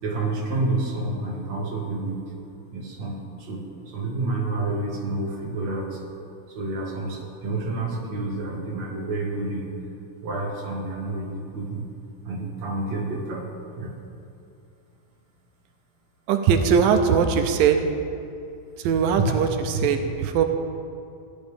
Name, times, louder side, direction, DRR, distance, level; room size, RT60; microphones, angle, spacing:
voice 1, 0.0-2.3 2.7-6.0 6.5-9.7 10.2-11.9 12.2-13.5 13.8-14.0 19.2-19.3, right 2 dB, 55° right, -2 dB, 2.9 m, -29 dB
voice 2, 16.3-17.8 18.8-20.4, right 7 dB, 90° right, 6 dB, 2.4 m, -20 dB
18.0 x 11.5 x 3.5 m, 2.6 s
omnidirectional pair, 4.0 m